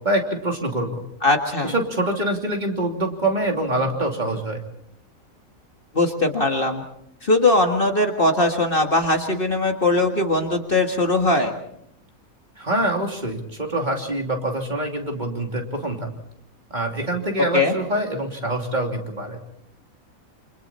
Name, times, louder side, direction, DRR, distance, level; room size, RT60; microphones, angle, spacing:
voice 1, 0.0-1.0 1.6-4.6 12.6-16.1 16.7-19.4, right 1 dB, 30° right, 2 dB, 3.0 m, -25 dB
voice 2, 1.2-1.7 5.9-6.8 7.2-11.6 17.5-17.7, left 2 dB, 40° left, 4 dB, 1.9 m, -20 dB
28.0 x 26.0 x 4.3 m, 0.70 s
omnidirectional pair, 1.5 m